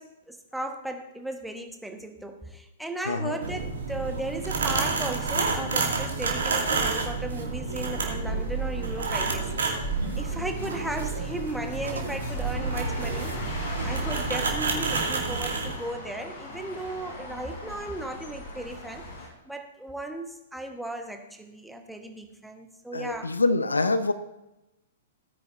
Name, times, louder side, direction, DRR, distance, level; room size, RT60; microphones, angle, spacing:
voice 1, 0.0-9.6 10.2-19.1 19.5-23.3, right 1 dB, ahead, 5 dB, 1.1 m, -36 dB
voice 2, 3.1-3.4 22.9-24.1, left 3 dB, 75° left, 12 dB, 0.7 m, -25 dB
sound 1, 3.4-15.7, right 4 dB, 65° right, 2.3 m, -29 dB
sound 2, 6.8-19.3, equal, 50° left, 3.7 m, -37 dB
17.5 x 9.7 x 2.6 m, 0.94 s
figure-of-eight pair, 110°, 0 cm